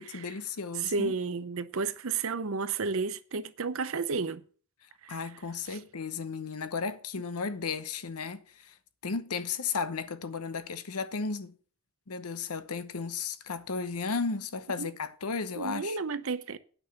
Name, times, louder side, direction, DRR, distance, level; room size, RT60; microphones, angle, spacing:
voice 1, 0.0-1.1 5.1-8.7 9.0-11.5 12.1-16.0, left 5 dB, 80° left, 0.9 m, -34 dB
voice 2, 0.7-4.4 5.0-5.2 5.7-5.8 14.8-14.9 15.6-16.6, right 4 dB, 65° right, 0.7 m, -32 dB
9.1 x 6.1 x 6.7 m
head